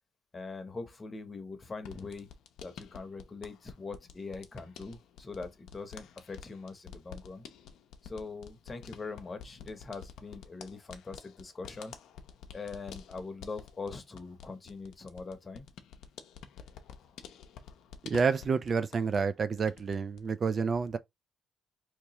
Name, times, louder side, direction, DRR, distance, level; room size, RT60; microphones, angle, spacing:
voice 1, 0.3-2.3 2.6-7.4 8.0-11.9 12.5-15.7, left 4 dB, 30° left, 0.9 m, -42 dB
sound 1, 1.8-19.3 19.6-20.3, left 7 dB, 80° left, 0.5 m, -50 dB
voice 2, 18.0-21.0, right 5 dB, 45° right, 0.4 m, -29 dB
3.4 x 2.9 x 2.9 m
cardioid pair, 90°, 0 cm